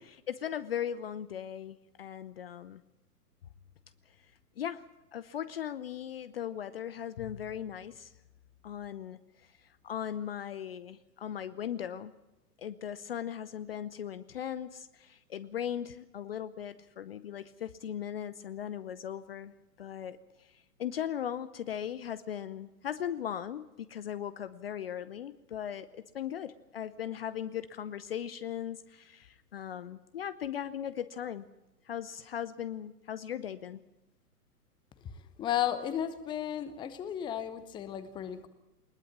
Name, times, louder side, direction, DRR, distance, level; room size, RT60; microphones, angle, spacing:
voice 1, 0.3-2.8 4.6-4.8 5.1-8.1 8.6-9.2 9.8-12.1 12.6-31.5 31.9-33.8, left 9 dB, 40° left, 15 dB, 0.8 m, -38 dB
voice 2, 35.4-38.5, left 10 dB, 10° left, 13 dB, 0.9 m, -34 dB
20.5 x 20.0 x 7.3 m, 0.97 s
figure-of-eight pair, 115°, 47 cm